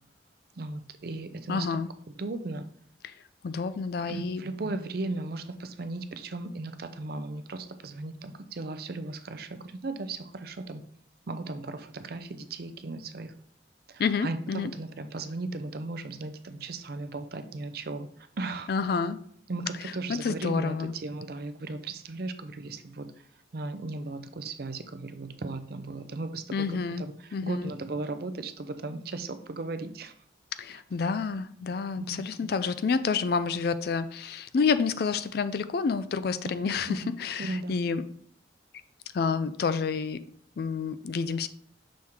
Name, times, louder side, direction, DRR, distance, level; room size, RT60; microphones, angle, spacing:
voice 1, 0.6-1.7 2.2-2.7 4.1-10.8 11.3-13.3 13.9-18.1 18.4-18.7 19.5-23.1 23.5-27.1 27.4-30.1 32.1-32.5 36.4-37.1 37.4-37.8, right 2 dB, 50° right, 10 dB, 0.5 m, -36 dB
voice 2, 1.5-1.9 3.0-3.1 3.4-4.4 14.0-14.7 18.7-19.2 19.8-19.9 20.2-20.9 26.5-27.0 27.3-27.7 30.6-38.1 39.1-40.2 40.6-41.5, left 5 dB, 50° left, 13 dB, 0.3 m, -29 dB
6.3 x 3.6 x 4.4 m, 0.63 s
head